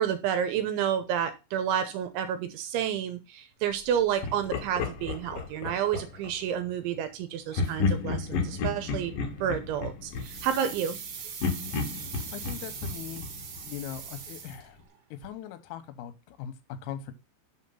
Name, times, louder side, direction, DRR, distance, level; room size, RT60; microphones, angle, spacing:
voice 1, 0.0-9.1 9.4-11.0, right 9 dB, 80° right, 9 dB, 2.9 m, -30 dB
Laughter, 4.2-6.3 7.5-11.0 11.4-14.2, left 4 dB, 65° left, 2.3 m, -32 dB
sound 1, 10.1-15.0 15.2-15.3, right 6 dB, 55° right, 2.2 m, -41 dB
voice 2, 12.3-13.2 13.7-14.8 15.1-16.6 16.8-17.1, left 10 dB, 80° left, 10 dB, 3.6 m, -40 dB
7.2 x 6.5 x 5.6 m, 0.27 s
omnidirectional pair, 6.0 m